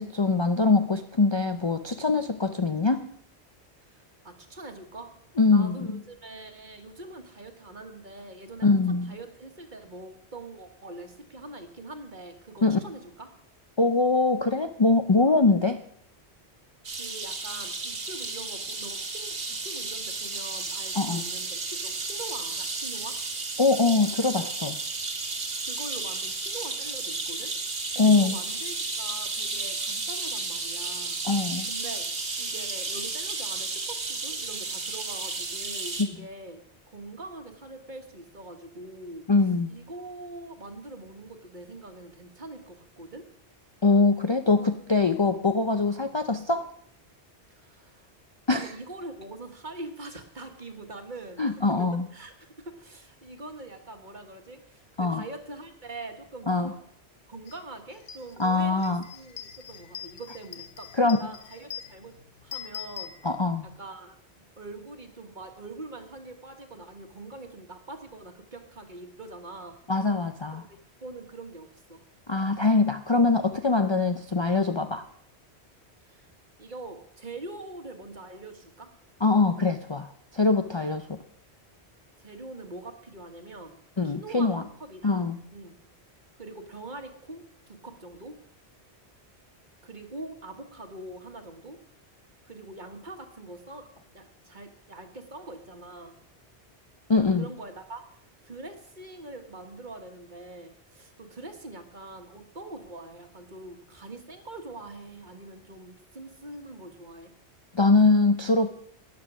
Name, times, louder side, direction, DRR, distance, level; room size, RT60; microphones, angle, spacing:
voice 1, 0.0-3.1 5.4-6.0 8.6-9.2 12.6-12.8 13.8-15.8 20.9-21.2 23.6-24.8 28.0-28.3 31.2-31.7 36.0-36.1 39.3-39.7 43.8-46.7 48.5-48.7 51.4-52.0 55.0-55.2 56.5-56.7 58.4-59.0 61.0-61.2 63.2-63.7 69.9-70.6 72.3-75.0 79.2-81.2 84.0-84.6 85.0-85.4 97.1-97.5 107.7-108.7, left 3 dB, 30° left, 6 dB, 0.5 m, -23 dB
voice 2, 3.8-5.1 5.5-13.3 16.9-23.2 25.6-27.5 27.9-31.2 31.7-32.1 32.4-39.2 39.7-43.2 47.5-48.1 48.5-56.8 57.3-62.1 62.4-63.1 63.8-69.8 70.5-72.0 76.0-76.3 76.6-78.9 82.2-83.8 84.0-85.7 86.4-88.4 89.8-91.8 92.4-93.9 94.1-96.2 97.4-98.0 98.4-107.3, right 2 dB, 45° right, 5 dB, 1.7 m, -43 dB
sound 1, 16.8-36.0, right 3 dB, 80° right, 2.0 m, -33 dB
sound 2, 57.5-57.6 57.9-63.8, left 9 dB, 85° left, 1.1 m, -43 dB
13.0 x 10.0 x 6.1 m, 0.67 s
omnidirectional pair, 1.1 m